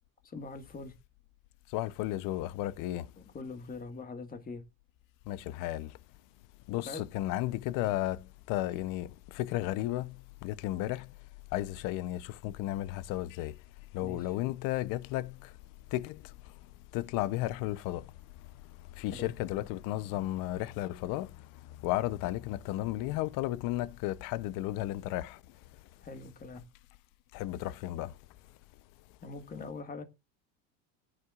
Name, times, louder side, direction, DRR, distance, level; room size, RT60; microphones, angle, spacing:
voice 1, 0.2-1.0 3.3-4.6 6.8-7.0 13.9-14.3 19.1-19.3 26.0-26.7 29.2-30.0, left 3 dB, 20° left, 1.8 m, -42 dB
voice 2, 1.7-3.0 5.3-5.9 6.7-8.2 8.5-9.1 9.4-10.1 10.4-11.0 11.5-13.5 13.9-15.3 15.9-16.1 16.9-18.0 19.0-21.3 21.8-25.3 27.3-28.1, left 15 dB, 55° left, 0.8 m, -33 dB
16.0 x 9.9 x 2.5 m
supercardioid pair, 130°, 40 cm